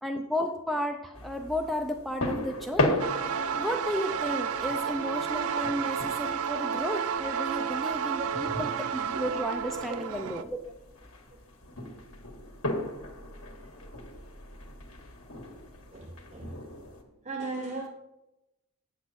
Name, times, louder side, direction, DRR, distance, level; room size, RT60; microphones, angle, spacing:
voice 1, 0.0-3.0 3.5-10.6, equal, ahead, 3 dB, 0.5 m, -33 dB
sound 1, 1.1-17.0, left 1 dB, 75° left, 1.7 m, -37 dB
sound 2, 3.0-10.4, right 7 dB, 80° right, 0.5 m, -31 dB
voice 2, 8.2-8.6 9.9-10.0 13.6-13.7 15.9-16.6 17.2-17.9, right 3 dB, 35° right, 1 dB, 0.8 m, -38 dB
9.1 x 8.1 x 4.3 m, 0.94 s
head